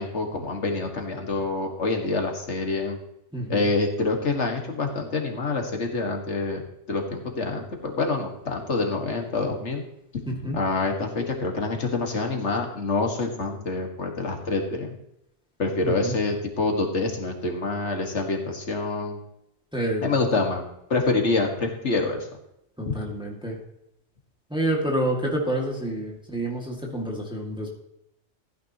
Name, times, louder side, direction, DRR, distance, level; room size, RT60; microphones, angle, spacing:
voice 1, 0.0-3.0 3.5-6.6 6.9-9.8 10.5-14.9 15.6-19.2 20.0-20.6 20.9-22.3 22.9-23.0, left 3 dB, 80° left, 3 dB, 2.1 m, -26 dB
voice 2, 3.3-3.7 10.4-10.6 15.8-16.2 19.7-20.1 22.8-23.6 24.5-27.7, right 1 dB, 5° right, 0 dB, 2.1 m, -28 dB
15.0 x 9.5 x 3.0 m, 0.81 s
omnidirectional pair, 1.2 m